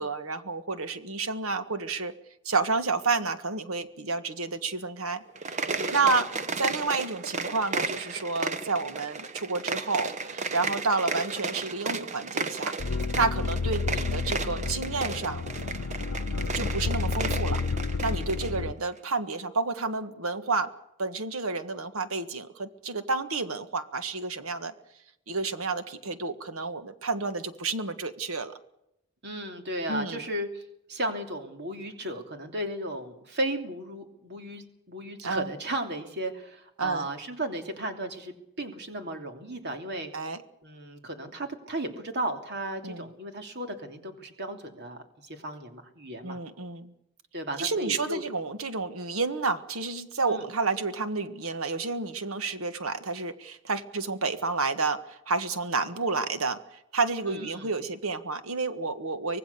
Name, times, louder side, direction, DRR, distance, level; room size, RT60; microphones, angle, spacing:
voice 1, 0.0-2.1 2.4-6.3 6.6-12.7 13.1-15.4 16.5-17.6 18.0-20.7 21.0-24.7 25.3-28.5 29.9-30.2 35.2-35.5 36.8-37.1 40.1-40.4 42.8-43.1 46.2-46.9 47.6-56.6 56.9-59.4, right 3 dB, 70° right, 10 dB, 1.5 m, -30 dB
sound 1, 5.3-18.6, right 4 dB, 30° right, 1.0 m, -34 dB
voice 2, 5.8-6.2 29.2-30.6 30.9-40.1 40.6-46.4 47.3-48.2 50.3-50.4 57.2-57.7, right 1 dB, 50° right, 5 dB, 2.8 m, -35 dB
sound 2, 12.8-18.7, left 4 dB, 80° left, 0.7 m, -30 dB
25.0 x 18.5 x 6.9 m, 0.86 s
head